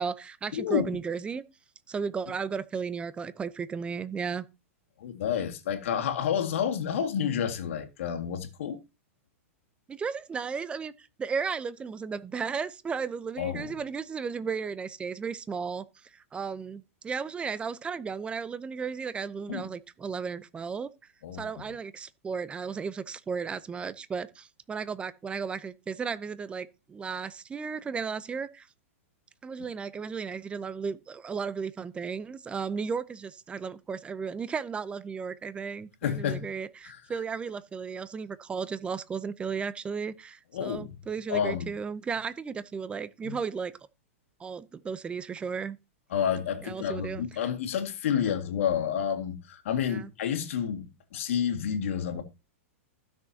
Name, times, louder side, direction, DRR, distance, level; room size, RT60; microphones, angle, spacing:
voice 1, 0.0-1.4 1.9-4.5 9.9-20.9 21.4-28.7 29.4-43.7 44.4-45.8 46.6-47.5 48.2-48.4 49.9-50.1, right 5 dB, 15° right, 0.6 m, -34 dB
voice 2, 0.5-0.9 5.0-8.8 13.4-13.7 19.5-19.7 21.2-21.5 36.0-36.5 36.9-37.0 40.5-40.9 41.3-41.7 43.2-43.4 46.1-52.2, left 8 dB, 70° left, 2.0 m, -29 dB
15.5 x 6.4 x 2.8 m
hypercardioid pair, 130°, 7 cm